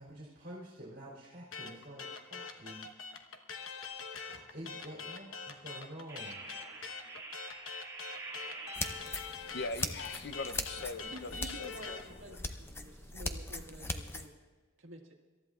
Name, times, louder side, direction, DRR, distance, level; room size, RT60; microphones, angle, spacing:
voice 1, 0.0-2.9 4.2-6.4, equal, 45° right, -6 dB, 3.1 m, -48 dB
sound 1, 1.5-12.1, left 5 dB, 70° left, 1.1 m, -43 dB
sound 2, 4.9-5.2 6.1-9.4, right 3 dB, 15° right, 2.2 m, -47 dB
sound 3, 8.7-14.3, left 2 dB, 10° left, 0.6 m, -40 dB
voice 2, 9.5-12.0 12.3-12.4, left 3 dB, 50° left, 12 dB, 0.6 m, -41 dB
voice 3, 11.1-14.3 14.8-15.1, right 1 dB, 60° right, 1 dB, 1.8 m, -50 dB
26.5 x 13.5 x 2.4 m, 1.4 s
head